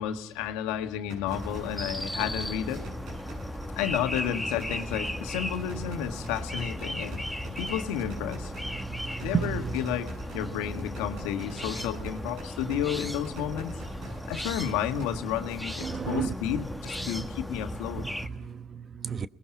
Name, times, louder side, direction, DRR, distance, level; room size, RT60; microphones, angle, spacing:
voice 1, 0.0-2.9 3.7-7.3 7.6-8.5 9.2-13.7 14.3-18.0, left 10 dB, 90° left, 1.6 m, -32 dB
sound 1, 1.1-15.1, right 2 dB, 80° right, 7.9 m, -47 dB
sound 2, 1.3-18.3, left 1 dB, ahead, 1.6 m, -36 dB
voice 2, 8.7-10.0 10.4-10.6 11.8-12.1 12.6-12.8 14.1-14.3 15.8-16.6 17.0-17.3 18.0-19.3, right 6 dB, 45° right, 1.0 m, -34 dB
30.0 x 20.5 x 5.8 m
supercardioid pair, 70°, 0 cm